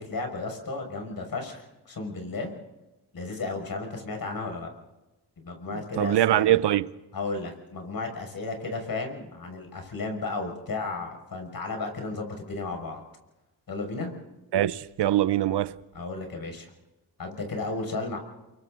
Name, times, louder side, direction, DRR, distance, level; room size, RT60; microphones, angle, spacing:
voice 1, 0.1-2.5 3.1-4.7 5.4-6.6 7.1-13.0 13.7-14.1 15.9-16.7 17.2-18.2, left 3 dB, 55° left, 6.1 m, -34 dB
voice 2, 5.7-6.9 14.5-15.8, right 12 dB, 70° right, 0.8 m, -23 dB
30.0 x 23.5 x 4.0 m
cardioid pair, 80°, 42 cm